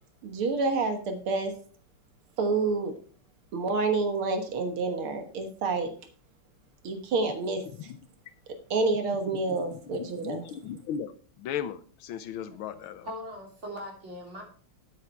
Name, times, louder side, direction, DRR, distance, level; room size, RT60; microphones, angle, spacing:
voice 1, 0.2-1.5 2.4-2.9 3.5-5.9 6.8-7.6 8.7-10.4, right 3 dB, 75° right, 6 dB, 2.2 m, -28 dB
voice 2, 9.3-13.1, left 8 dB, 75° left, 13 dB, 1.5 m, -37 dB
voice 3, 13.0-14.4, equal, 30° right, -1 dB, 3.8 m, -40 dB
10.0 x 8.4 x 4.5 m, 0.43 s
omnidirectional pair, 2.4 m